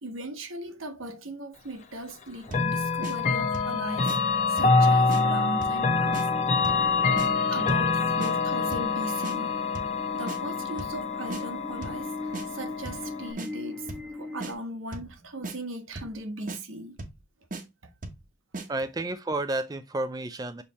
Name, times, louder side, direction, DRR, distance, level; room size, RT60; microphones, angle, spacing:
voice 1, 0.0-4.1 4.5-6.3 7.5-9.6 10.1-17.0, right 1 dB, 80° right, 1.3 m, -38 dB
Chime / Clock, 2.5-13.3, left 4 dB, 35° left, 1.1 m, -26 dB
sound 1, 2.5-2.7 3.0-3.2 3.5-3.8 4.1-4.2 4.6-4.8 5.1-5.2 5.6-5.8 6.1-6.3 6.6-6.9 7.2-7.3 7.7-7.9 8.2-8.3 8.7-8.9 9.2-9.4 9.7-10.0 10.3-10.4 10.8-11.0 11.3-11.4 11.8-12.0 12.3-12.5 12.9-13.1 13.4-13.5 13.9-14.1 14.4-14.5 14.9-15.1 15.4-15.6 16.0-16.2 16.5-16.6 17.0-17.2 17.5-17.6 18.0-18.2 18.5-18.7, right 2 dB, 40° right, 1.1 m, -37 dB
sound 2, 4.6-14.5, left 3 dB, 10° left, 1.2 m, -41 dB
voice 2, 18.7-20.6, right 2 dB, 20° right, 0.4 m, -31 dB
7.1 x 3.3 x 4.1 m
head